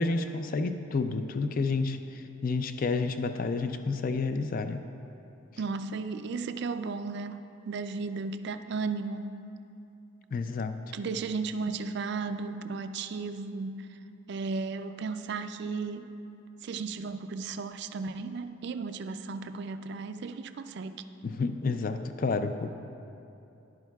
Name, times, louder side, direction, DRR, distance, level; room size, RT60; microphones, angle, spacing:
voice 1, 0.0-4.8 10.3-10.8 21.2-22.7, left 3 dB, 40° left, 9 dB, 0.4 m, -30 dB
voice 2, 5.6-9.3 10.9-14.0 14.3-16.1 16.6-21.0, right 4 dB, 55° right, 9 dB, 0.4 m, -35 dB
13.5 x 11.0 x 2.3 m, 2.8 s
head